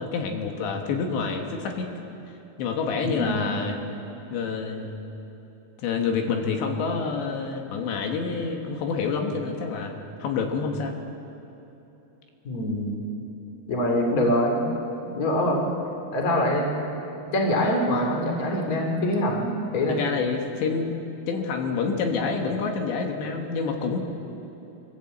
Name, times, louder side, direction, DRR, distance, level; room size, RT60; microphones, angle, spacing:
voice 1, 0.0-1.9 2.6-3.8 4.3-5.0 5.8-10.9 19.9-21.0 21.3-24.0, left 5 dB, 80° left, 3 dB, 3.7 m, -27 dB
voice 2, 3.0-3.5 12.4-13.0 13.7-14.6 15.1-15.6 16.1-16.9 17.3-19.5 19.7-20.0, left 1 dB, 25° left, 1 dB, 2.5 m, -24 dB
24.0 x 16.0 x 7.9 m, 3.0 s
omnidirectional pair, 5.1 m